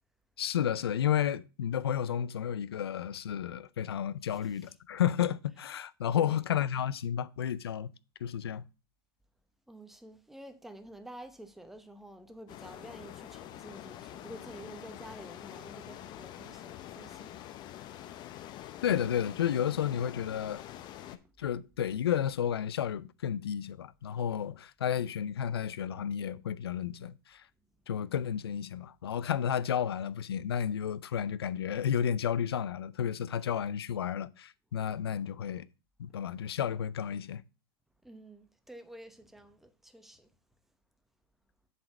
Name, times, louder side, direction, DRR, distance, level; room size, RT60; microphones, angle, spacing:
voice 1, 0.4-7.9 8.2-8.6 18.8-20.6 21.4-27.4 27.9-35.7 36.0-37.4, left 9 dB, 85° left, 0.5 m, -32 dB
voice 2, 9.7-17.4 21.0-21.3 38.0-40.3, right 1 dB, ahead, 0.9 m, -49 dB
sound 1, 12.5-21.2, left 12 dB, 35° left, 0.7 m, -46 dB
7.6 x 4.2 x 5.9 m
hypercardioid pair, 110°, 13 cm